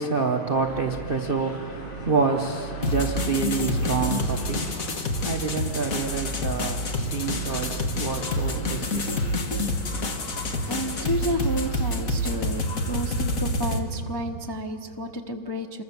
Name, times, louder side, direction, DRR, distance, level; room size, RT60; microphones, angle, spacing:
voice 1, 0.0-9.5, right 4 dB, 45° right, 0.7 m, -28 dB
sound 1, 0.5-13.4, right 1 dB, 75° left, 3.0 m, -36 dB
sound 2, 2.8-13.8, left 1 dB, 45° left, 1.8 m, -28 dB
voice 2, 10.7-15.8, equal, 20° left, 0.6 m, -31 dB
27.5 x 22.5 x 7.1 m
omnidirectional pair, 2.2 m